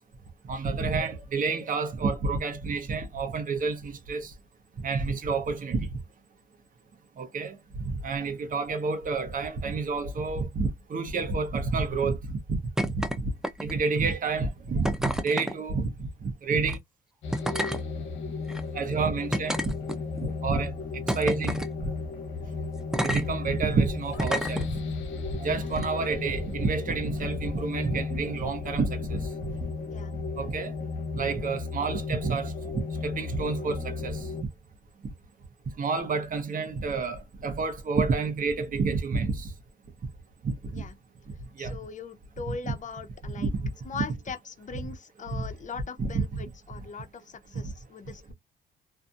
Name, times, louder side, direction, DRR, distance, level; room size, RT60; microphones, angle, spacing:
voice 1, 0.5-4.3 4.8-5.9 7.2-7.5 7.8-12.6 13.2-13.3 13.6-16.8 18.7-19.8 20.2-20.7 21.2-21.6 23.0-24.6 25.4-29.3 30.4-30.7 31.2-32.5 33.0-34.3 35.8-39.5 40.7-40.8 41.6-41.8 42.5-42.7 43.4-43.7 45.3-45.5 46.0-46.4, right 4 dB, 45° right, 0.9 m, -29 dB
sound 1, 12.8-13.2 13.4-13.9 14.8-15.5 16.6-16.8 17.3-17.8 18.5-18.6 19.3-20.2 21.1-21.7 22.9-23.2 24.2-24.6 25.7-25.9, equal, 5° right, 0.5 m, -29 dB
sound 2, 17.2-34.4, left 4 dB, 75° left, 0.8 m, -34 dB
voice 2, 41.6-43.5 43.8-48.3, left 5 dB, 40° left, 0.7 m, -40 dB
2.6 x 2.5 x 2.4 m
cardioid pair, 90°, 20 cm